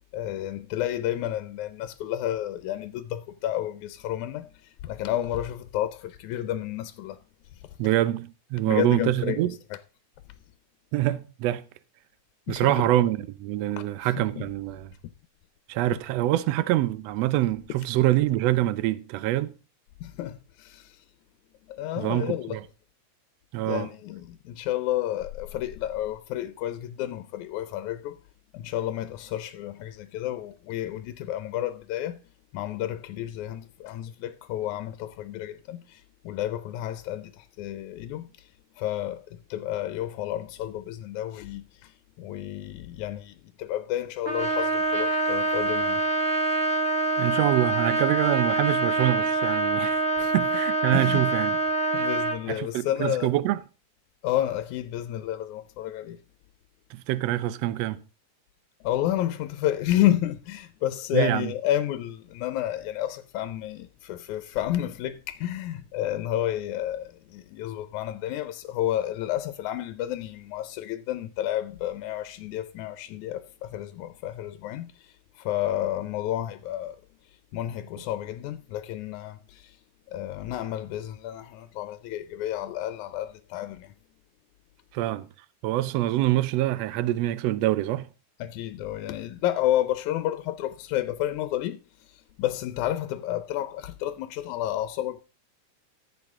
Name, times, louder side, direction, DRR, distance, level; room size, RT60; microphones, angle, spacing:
voice 1, 0.1-7.2 7.5-7.6 8.6-9.8 12.5-12.9 14.0-14.5 20.0-21.0 21.7-22.6 23.7-28.2 28.5-32.2 32.5-46.0 50.2-50.4 50.9-51.3 51.9-53.3 54.2-56.2 58.8-77.0 77.5-79.8 80.1-83.9 88.4-95.2, left 12 dB, 80° left, 2.1 m, -31 dB
voice 2, 7.8-9.5 10.9-11.6 12.5-14.9 15.7-19.5 22.0-22.6 23.5-23.9 47.2-51.6 52.5-53.6 56.9-58.0 61.1-61.5 84.9-85.3 85.6-88.1, right 15 dB, 75° right, 1.7 m, -25 dB
Trumpet, 44.2-52.4, right 2 dB, 45° right, 0.7 m, -25 dB
14.5 x 8.3 x 3.7 m
omnidirectional pair, 3.4 m